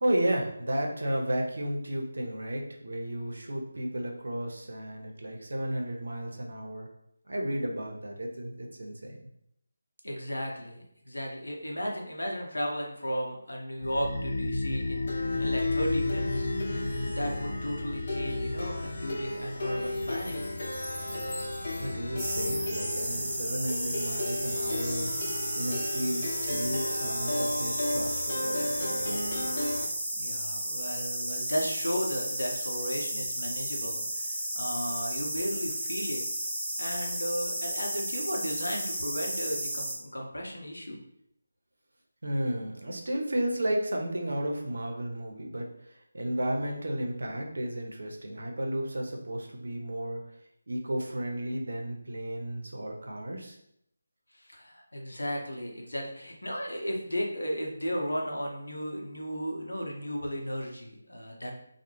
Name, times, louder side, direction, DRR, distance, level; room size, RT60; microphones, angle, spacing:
voice 1, 0.0-6.9 7.3-9.2 21.8-25.1 25.6-29.2 42.2-50.2 50.7-53.6, right 1 dB, 65° right, 2 dB, 0.6 m, -33 dB
voice 2, 10.0-16.8 17.0-20.4 30.1-36.2 36.8-41.0 54.3-61.5, equal, 85° left, 0 dB, 0.7 m, -35 dB
Plucked string instrument, 13.8-29.8, left 2 dB, 40° left, 0.7 m, -32 dB
sound 1, 22.2-39.9, right 1 dB, 15° right, 0.7 m, -33 dB
2.3 x 2.0 x 3.0 m, 0.75 s
figure-of-eight pair, 160°, 0 cm